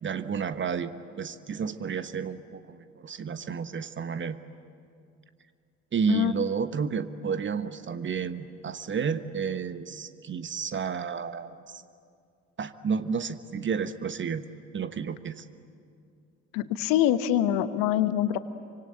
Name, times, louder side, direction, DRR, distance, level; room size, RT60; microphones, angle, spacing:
voice 1, 0.0-0.9 1.2-4.4 5.9-11.8 12.6-14.4 14.7-15.5, right 6 dB, 30° right, 12 dB, 1.2 m, -31 dB
voice 2, 16.5-18.4, left 11 dB, 55° left, 13 dB, 1.2 m, -24 dB
26.5 x 25.0 x 9.0 m, 2.4 s
figure-of-eight pair, 55°, 40 cm